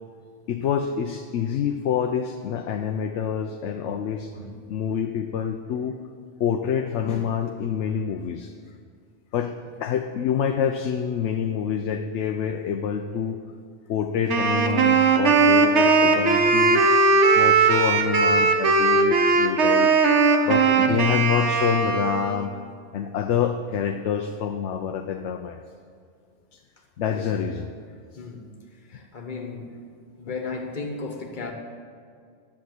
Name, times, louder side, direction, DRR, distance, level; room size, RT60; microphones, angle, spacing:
voice 1, 0.5-4.3 4.7-6.0 6.4-8.5 9.3-13.4 13.9-16.8 17.3-20.0 20.5-22.5 22.9-25.6 26.5-26.6 27.0-27.7 28.1-28.2 30.3-30.4 31.4-31.5, left 8 dB, 75° left, 5 dB, 0.9 m, -27 dB
Wind instrument woodwind instrument, 14.3-22.5, right 4 dB, 70° right, 1.3 m, -19 dB
voice 2, 28.2-28.5 28.9-29.7 30.2-31.5, left 4 dB, 40° left, 3 dB, 1.3 m, -34 dB
10.5 x 7.4 x 7.8 m, 2.2 s
omnidirectional pair, 1.2 m